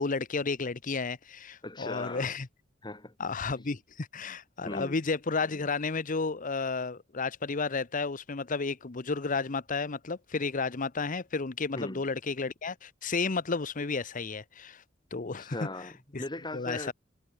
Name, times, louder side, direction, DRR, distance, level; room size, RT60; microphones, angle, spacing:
voice 1, 0.0-2.5 3.2-14.8 15.1-15.6 16.1-16.2 16.5-16.9, left 4 dB, 45° left, 0.9 m, -32 dB
voice 2, 1.6-2.3 2.8-3.1 4.6-5.0 11.7-12.0 15.4-16.9, left 2 dB, 25° left, 2.8 m, -38 dB
head